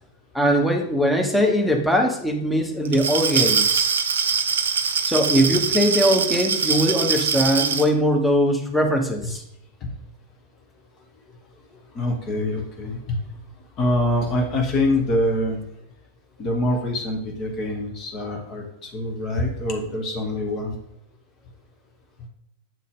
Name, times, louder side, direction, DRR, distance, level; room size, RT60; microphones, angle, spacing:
voice 1, 0.3-3.9 5.0-9.4, equal, ahead, 1 dB, 1.1 m, -21 dB
Glass, 2.8-7.9, right 6 dB, 65° right, 0.5 m, -23 dB
voice 2, 11.7-13.2 13.8-15.6 16.4-20.8, left 1 dB, 30° left, 1 dB, 1.1 m, -25 dB
7.3 x 4.1 x 3.7 m, 0.76 s
figure-of-eight pair, 90°, 0 cm